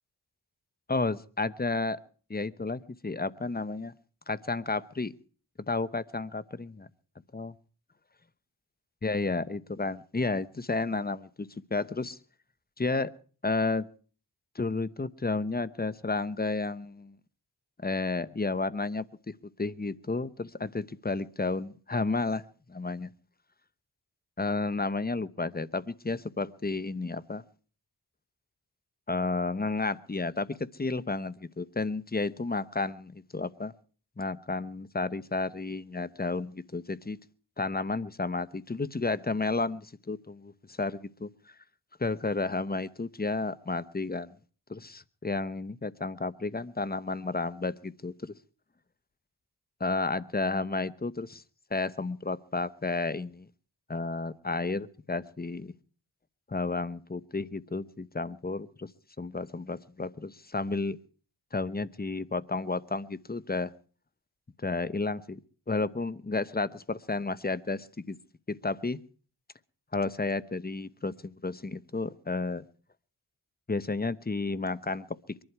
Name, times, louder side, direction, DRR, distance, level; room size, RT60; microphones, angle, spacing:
voice 1, 0.9-2.0 2.3-3.9 4.3-5.1 5.7-6.9 7.3-7.5 9.0-12.2 12.8-13.1 13.4-13.9 14.5-17.1 17.8-19.1 19.6-22.4 22.7-23.1 24.4-27.4 29.1-33.7 34.2-37.2 37.6-41.3 42.0-44.3 44.7-48.3 49.8-51.4 51.7-53.5 53.9-55.7 56.5-58.9 59.2-61.0 61.5-63.7 64.6-65.4 65.7-68.2 68.5-69.0 69.9-72.6 73.7-75.4, left 3 dB, 20° left, 17 dB, 1.0 m, -32 dB
23.5 x 11.5 x 4.7 m, 0.42 s
cardioid pair, 40°, 41 cm